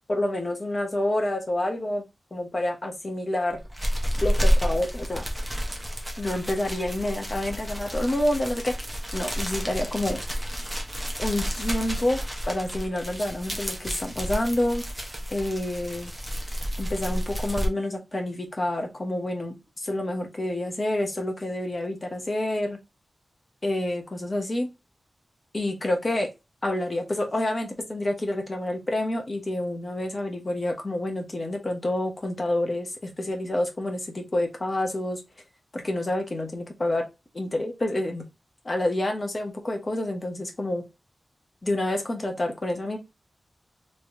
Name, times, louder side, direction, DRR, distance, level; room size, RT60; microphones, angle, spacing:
voice 1, 0.1-2.0 2.3-3.6 4.2-5.2 6.2-8.7 9.1-10.2 11.2-12.2 12.5-14.8 15.3-16.1 16.8-22.8 23.6-24.7 25.5-26.3 26.6-35.2 35.7-37.1 37.3-38.2 38.6-40.8 41.6-43.0, left 1 dB, 30° left, 3 dB, 1.1 m, -28 dB
sound 1, 3.5-17.7, equal, 5° right, 1.0 m, -30 dB
3.3 x 3.2 x 2.6 m, 0.24 s
wide cardioid pair, 135°, 0 cm